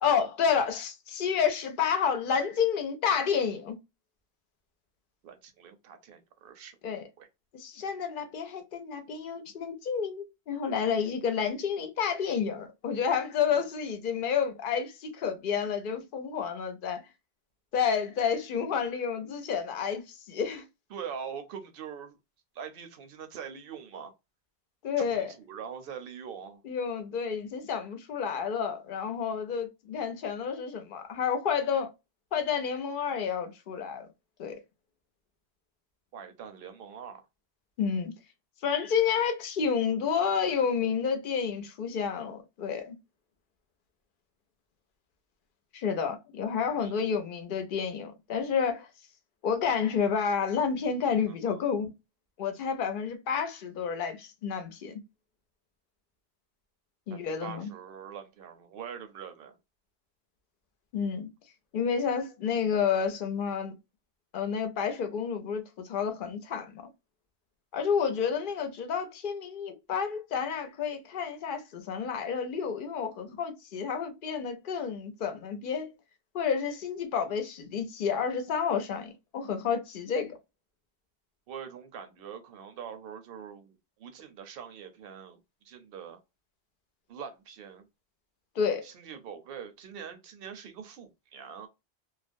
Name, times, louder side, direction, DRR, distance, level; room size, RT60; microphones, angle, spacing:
voice 1, 0.0-3.8 6.8-7.0 7.5-17.0 17.7-20.6 24.8-25.3 26.6-31.9 32.3-34.1 34.4-34.6 37.8-38.1 38.6-43.0 45.7-48.9 49.4-51.9 52.4-55.0 57.1-57.7 60.9-61.3 61.7-63.7 64.3-66.8 67.7-75.9 76.3-80.4 88.6-88.8, left 6 dB, 60° left, 0.7 m, -30 dB
voice 2, 5.2-7.3 13.5-13.6 20.9-22.2 22.5-24.1 25.0-26.6 36.1-37.2 46.8-47.0 51.3-51.7 57.1-59.5 81.5-85.4 85.6-86.2 87.1-87.9 88.8-91.7, right 7 dB, 65° right, 0.8 m, -43 dB
2.4 x 2.0 x 2.5 m
omnidirectional pair, 1.1 m